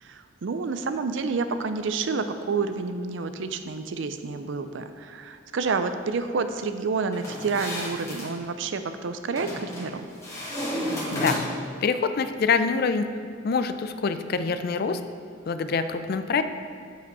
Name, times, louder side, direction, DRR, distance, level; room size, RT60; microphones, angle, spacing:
voice 1, 0.0-10.1, right 4 dB, 70° right, 9 dB, 0.5 m, -29 dB
sound 1, 7.1-8.3 9.4-9.9 10.2-11.7, equal, 15° left, 1.6 m, -31 dB
voice 2, 11.1-11.4 11.8-13.1 13.4-15.0 15.5-16.4, left 5 dB, 50° left, 10 dB, 0.4 m, -25 dB
8.0 x 5.0 x 4.7 m, 2.3 s
head